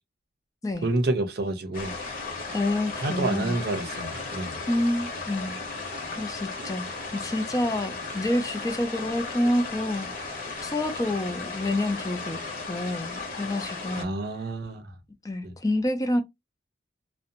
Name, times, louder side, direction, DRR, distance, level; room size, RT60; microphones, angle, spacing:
voice 1, 0.8-1.9 3.0-4.5 13.9-14.8 15.4-15.5, right 2 dB, 60° right, 0.6 m, -28 dB
sound 1, 1.7-14.0, left 3 dB, 50° left, 0.9 m, -35 dB
voice 2, 2.5-3.6 4.7-5.6 6.2-6.9 7.1-10.3 10.6-12.4 12.7-14.1 15.2-16.2, left 1 dB, 20° left, 0.4 m, -28 dB
2.5 x 2.1 x 2.8 m
head